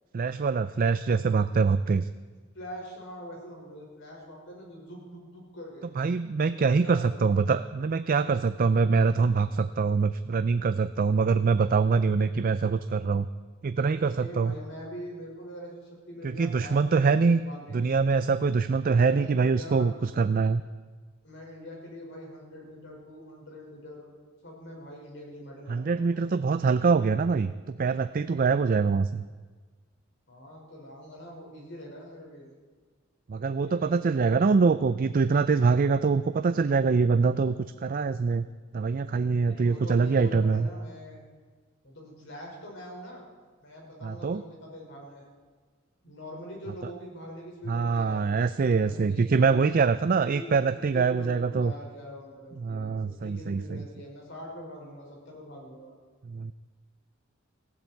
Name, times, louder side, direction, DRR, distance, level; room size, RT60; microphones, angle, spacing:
voice 1, 0.1-2.1 6.0-13.3 13.6-14.5 16.2-17.4 17.7-20.6 25.7-29.2 33.3-37.6 37.8-38.5 38.7-40.7 44.0-44.4 47.7-51.7 52.6-53.8 56.3-56.5, right 4 dB, 45° right, 12 dB, 0.4 m, -24 dB
voice 2, 2.5-5.9 6.8-7.4 14.2-18.0 18.8-19.9 21.2-24.1 24.4-26.4 30.3-32.5 33.5-34.9 39.4-41.2 41.8-43.2 43.6-45.2 46.0-48.3 48.6-49.6 50.1-50.5 50.9-55.9, equal, 65° left, -1 dB, 5.8 m, -43 dB
19.0 x 15.5 x 4.6 m, 1.4 s
head